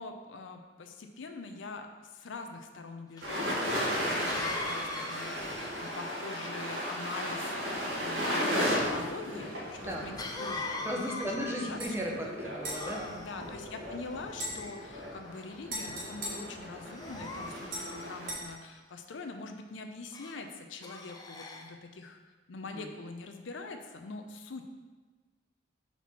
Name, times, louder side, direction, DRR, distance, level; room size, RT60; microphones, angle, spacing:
voice 1, 0.0-11.8 12.0-12.4 13.1-22.2 22.5-24.8, left 3 dB, 75° left, 5 dB, 0.5 m, -44 dB
Cough, 3.2-3.3 4.3-6.6 10.2-11.9 12.6-13.5 14.3-15.0 15.6-15.9 16.9-18.5 20.1-20.4 20.8-21.7, left 2 dB, 20° left, 0.4 m, -41 dB
sound 1, 3.2-18.3, equal, 65° right, 1.7 m, -35 dB
voice 2, 10.8-13.1 22.7-22.9, equal, 15° right, -1 dB, 0.7 m, -36 dB
sound 2, 11.8-11.9 12.6-13.9 14.3-17.2 17.7-18.4, right 1 dB, 50° right, 1.6 m, -42 dB
4.5 x 4.2 x 5.5 m, 1.3 s
head